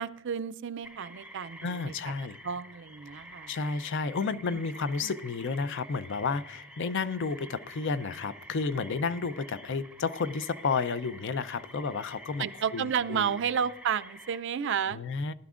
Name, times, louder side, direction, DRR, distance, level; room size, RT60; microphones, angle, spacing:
voice 1, 0.0-1.9 2.4-3.5 4.3-4.6 12.4-15.0, right 7 dB, 60° right, 13 dB, 0.4 m, -31 dB
sound 1, 0.8-14.4, right 1 dB, 5° right, 0.6 m, -49 dB
voice 2, 1.6-2.4 3.5-12.5 12.7-13.4 14.9-15.3, left 4 dB, 60° left, 14 dB, 0.5 m, -31 dB
18.5 x 11.5 x 2.5 m, 0.89 s
head